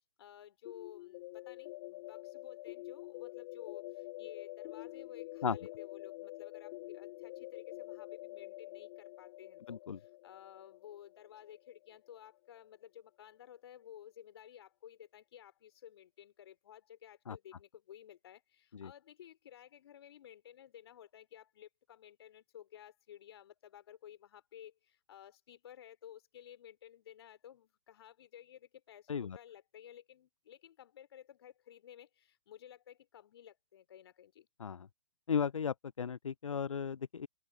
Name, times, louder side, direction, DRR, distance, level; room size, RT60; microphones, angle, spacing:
voice 1, 0.2-34.5, left 10 dB, 50° left, 2.6 m, -55 dB
sound 1, 0.7-12.4, left 20 dB, 35° left, 1.1 m, -47 dB
voice 2, 9.7-10.0 17.3-17.4 18.7-18.9 29.1-29.4 34.6-34.9 35.3-37.3, left 6 dB, 75° left, 0.4 m, -35 dB
open air
figure-of-eight pair, 120°, 17 cm